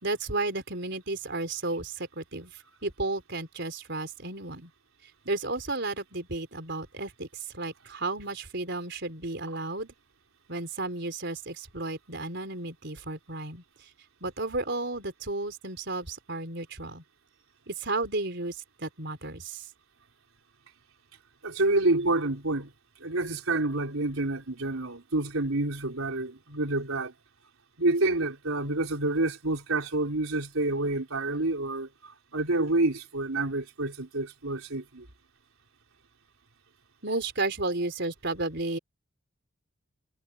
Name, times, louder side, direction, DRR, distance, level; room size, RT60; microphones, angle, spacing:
voice 1, 0.0-2.5 2.8-4.7 5.2-9.9 10.5-13.6 14.2-17.0 17.7-19.7 37.0-38.8, right 2 dB, 55° right, 4.6 m, -33 dB
voice 2, 21.4-22.7 23.0-27.1 27.8-35.1, right 2 dB, 85° right, 3.9 m, -28 dB
head